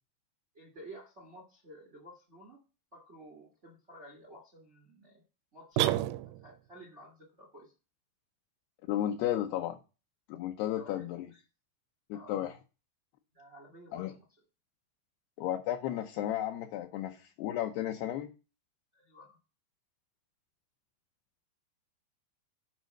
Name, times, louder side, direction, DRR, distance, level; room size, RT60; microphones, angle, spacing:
voice 1, 0.5-2.6 2.9-5.2 5.5-6.1 6.4-7.7 10.8-11.4 12.1-12.4 13.3-14.2 18.9-19.4, right 1 dB, 55° right, 2 dB, 0.7 m, -52 dB
sound 1, 5.8-6.7, right 14 dB, 85° right, 2.1 m, -30 dB
voice 2, 8.9-9.8 10.3-11.3 12.1-12.5 13.9-14.1 15.4-18.3, left 12 dB, 80° left, 4 dB, 2.6 m, -33 dB
9.2 x 5.0 x 6.5 m, 0.32 s
omnidirectional pair, 4.9 m